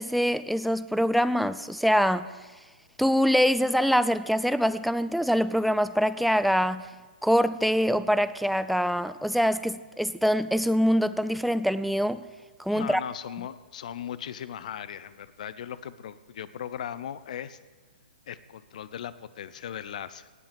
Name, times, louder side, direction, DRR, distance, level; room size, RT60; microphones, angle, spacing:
voice 1, 0.0-2.3 3.0-6.9 7.2-12.2 12.6-13.0, equal, ahead, 14 dB, 0.4 m, -24 dB
voice 2, 12.7-17.6 18.3-20.3, left 9 dB, 50° left, 16 dB, 0.8 m, -38 dB
18.0 x 8.9 x 7.3 m, 1.3 s
figure-of-eight pair, 120°, 5 cm